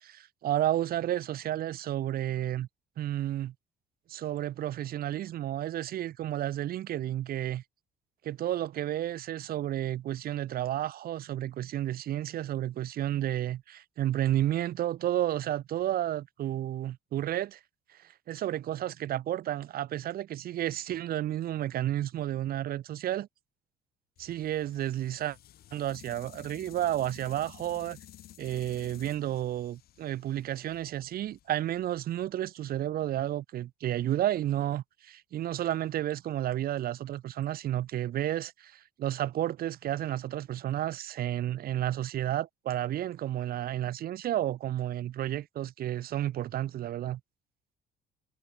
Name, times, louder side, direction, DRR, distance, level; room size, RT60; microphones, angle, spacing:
voice 1, 0.0-2.7 3.0-3.5 4.1-7.6 8.2-17.6 18.3-23.3 24.2-25.4 25.7-28.0 28.4-47.2, right 12 dB, 65° right, 1.8 m, -31 dB
sound 1, 24.2-32.3, left 12 dB, 65° left, 4.4 m, -53 dB
cardioid pair, 110°, 17 cm